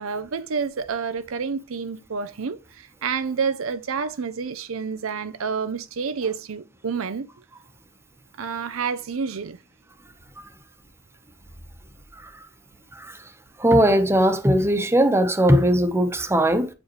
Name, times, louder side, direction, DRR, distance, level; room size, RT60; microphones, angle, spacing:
voice 1, 0.0-7.3 8.4-9.6, right 5 dB, 70° right, 0.6 m, -29 dB
voice 2, 13.6-16.7, right 1 dB, 10° right, 1.0 m, -19 dB
8.1 x 5.0 x 3.1 m
head